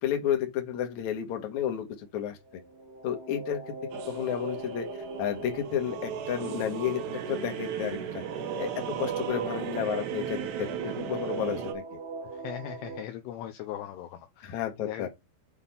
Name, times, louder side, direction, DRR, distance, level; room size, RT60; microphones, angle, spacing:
voice 1, 0.0-2.4 3.0-4.9 5.2-8.2 8.6-12.0 14.4-15.1, left 9 dB, 60° left, 2.1 m, -32 dB
sound 1, 2.4-13.0, right 2 dB, 50° right, 2.6 m, -43 dB
sound 2, 3.9-11.7, right 9 dB, 70° right, 2.9 m, -36 dB
voice 2, 12.3-15.1, left 11 dB, 80° left, 2.5 m, -39 dB
8.3 x 3.7 x 5.5 m
omnidirectional pair, 5.5 m